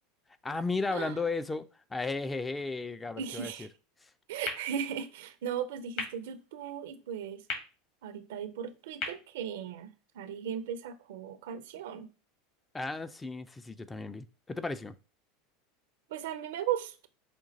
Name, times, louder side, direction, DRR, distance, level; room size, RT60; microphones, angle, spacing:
voice 1, 0.4-3.7 4.0-4.1 12.7-14.9, left 3 dB, 15° left, 0.4 m, -35 dB
voice 2, 3.2-3.7 4.3-7.4 8.0-12.1 16.1-17.1, right 9 dB, 65° right, 0.5 m, -37 dB
sound 1, 4.4-10.4, left 4 dB, 55° left, 2.0 m, -43 dB
5.2 x 2.5 x 3.9 m
figure-of-eight pair, 80°, 0 cm